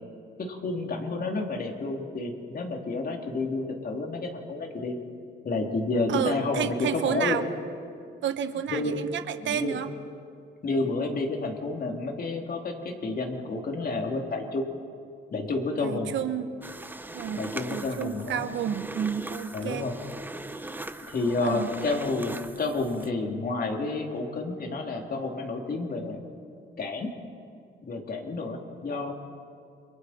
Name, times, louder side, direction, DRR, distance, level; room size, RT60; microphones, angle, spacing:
voice 1, 0.4-5.0 5.4-7.4 8.7-9.1 9.4-9.8 10.6-14.7 15.3-16.1 17.3-18.5 19.5-20.0 21.1-26.2 26.8-27.1 27.8-29.1, left 3 dB, 50° left, 2 dB, 2.9 m, -30 dB
voice 2, 6.1-7.4 8.2-9.9 15.8-16.5 17.1-19.9 21.4-21.7, right 9 dB, 70° right, 10 dB, 1.1 m, -30 dB
sound 1, 16.6-23.1, right 2 dB, 10° right, 0.9 m, -40 dB
29.5 x 23.0 x 4.3 m, 2.4 s
cardioid pair, 90°, 20 cm